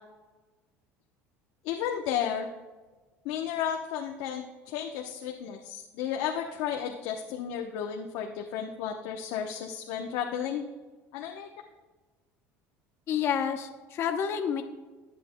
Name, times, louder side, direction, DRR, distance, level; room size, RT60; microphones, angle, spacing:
voice 1, 1.6-2.5 3.2-10.6 11.1-11.5, left 9 dB, 70° left, 2 dB, 0.9 m, -33 dB
voice 2, 13.1-14.6, left 8 dB, 45° left, 5 dB, 0.8 m, -29 dB
19.5 x 8.4 x 2.2 m, 1.3 s
cardioid pair, 130°, 6 cm